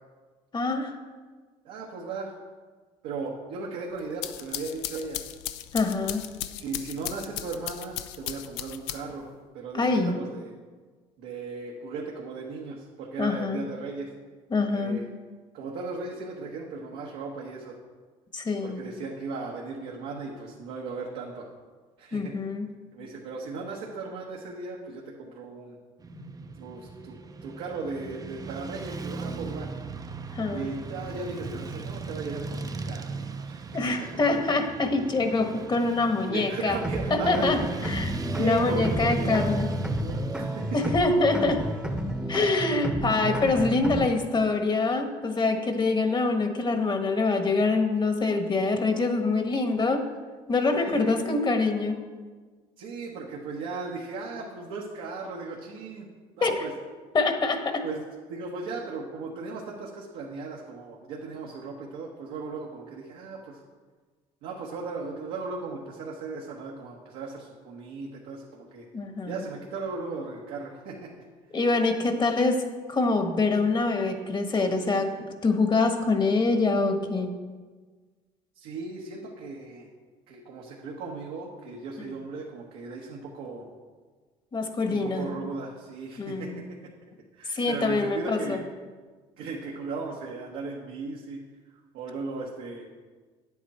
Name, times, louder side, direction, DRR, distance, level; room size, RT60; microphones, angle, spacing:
voice 1, 0.5-1.0 5.7-6.2 9.7-10.2 13.2-13.6 14.5-15.0 18.3-18.8 22.1-22.7 26.1-26.3 30.3-30.7 33.7-36.8 37.1-38.1 38.4-39.7 40.7-41.6 42.3-50.0 50.5-52.0 56.4-56.5 57.1-57.8 68.9-69.4 71.5-72.6 72.9-75.1 75.4-77.3 82.0-82.1 84.5-85.3 86.2-86.6 87.5-88.6, left 3 dB, 30° left, 6 dB, 1.3 m, -25 dB
voice 2, 1.6-2.3 3.0-5.2 6.6-9.3 9.5-10.5 11.2-14.1 14.7-15.0 15.5-17.8 18.6-21.5 22.0-22.3 22.9-25.8 26.6-27.1 27.4-29.7 30.5-33.6 36.2-37.8 38.3-39.5 40.0-40.9 50.7-51.2 52.8-56.1 56.4-56.7 57.8-58.0 58.3-63.6 64.4-68.8 69.3-71.1 78.6-79.9 80.3-83.7 84.9-86.6 87.4-88.6 89.4-91.4 91.9-92.9, right 3 dB, 80° right, -2 dB, 1.3 m, -36 dB
sound 1, 4.0-9.3, left 13 dB, 85° left, 0.5 m, -36 dB
Motorcycle / Traffic noise roadway noise, 26.0-42.6, right 4 dB, 25° right, 0.6 m, -37 dB
sound 2, 36.7-44.1, right 1 dB, 5° right, 0.9 m, -31 dB
9.4 x 8.1 x 4.3 m, 1.4 s
supercardioid pair, 80°, 15 cm